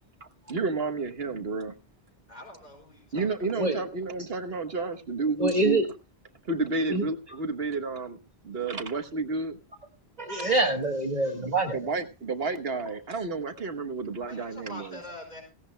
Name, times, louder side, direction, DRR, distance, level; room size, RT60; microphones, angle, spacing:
voice 1, 0.5-1.7 3.1-5.8 6.5-8.2 8.4-9.6 11.4-14.9, right 3 dB, 75° right, 8 dB, 1.5 m, -31 dB
voice 2, 2.3-3.3 3.5-3.7 14.2-15.4, left 1 dB, 45° left, 3 dB, 5.2 m, -44 dB
voice 3, 5.4-5.9 6.9-7.1 10.2-11.9, right 2 dB, 40° right, 2 dB, 1.7 m, -25 dB
17.5 x 16.5 x 2.2 m, 0.28 s
omnidirectional pair, 1.0 m